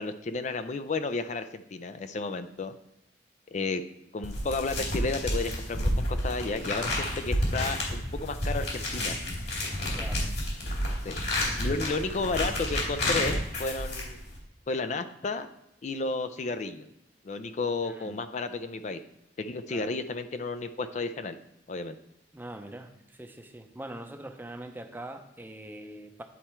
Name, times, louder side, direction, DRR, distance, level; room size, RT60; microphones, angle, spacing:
voice 1, 0.0-2.7 3.5-3.8 4.1-9.2 11.0-11.1 11.6-14.2 14.7-15.5 15.8-16.9 17.2-19.0 19.4-21.4 21.7-22.0, left 3 dB, 40° left, 10 dB, 0.4 m, -32 dB
sound 1, 4.2-14.4, left 1 dB, 65° left, 2.8 m, -30 dB
voice 2, 9.9-10.3 11.8-11.9 17.8-18.2 19.7-19.9 22.3-26.2, right 1 dB, 10° right, 6 dB, 0.6 m, -43 dB
10.0 x 4.4 x 4.4 m, 0.83 s
head